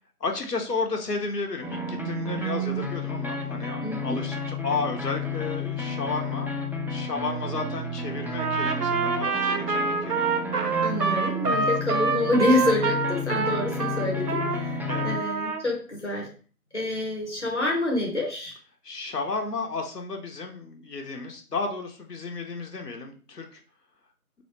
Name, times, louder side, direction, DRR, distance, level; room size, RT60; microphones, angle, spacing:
voice 1, 0.2-10.3 14.9-15.1 18.8-23.6, left 4 dB, 85° left, 3 dB, 0.7 m, -33 dB
sound 1, 1.6-15.2, left 1 dB, 5° right, 0.3 m, -31 dB
voice 2, 3.8-4.2 10.8-14.8 15.0-16.3 16.7-18.5, left 2 dB, 50° left, -1 dB, 0.7 m, -27 dB
Trumpet, 8.3-14.6 14.9-15.6, right 4 dB, 80° right, 0.6 m, -26 dB
2.5 x 2.0 x 2.9 m, 0.39 s
figure-of-eight pair, 175°, 47 cm